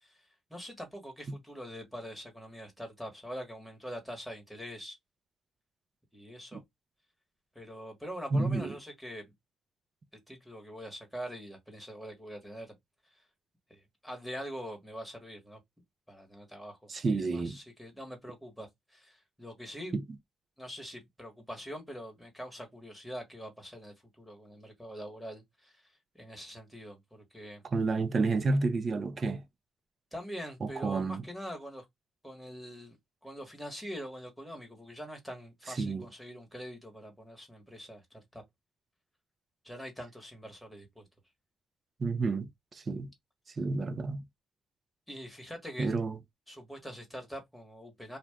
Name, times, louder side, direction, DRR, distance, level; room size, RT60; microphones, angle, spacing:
voice 1, 0.0-5.0 6.1-6.6 7.5-9.3 10.3-12.7 13.7-15.6 16.1-19.9 20.6-27.6 30.1-31.8 32.2-33.0 33.2-38.4 39.6-41.1 45.1-45.9 46.5-48.2, equal, ahead, 1.3 m, -44 dB
voice 2, 8.3-8.7 16.9-17.6 19.9-20.0 27.7-29.4 30.6-31.2 35.7-36.1 42.0-43.1 43.6-44.2 45.8-46.2, right 3 dB, 40° right, 0.6 m, -30 dB
2.5 x 2.3 x 3.4 m
cardioid pair, 90°, 0 cm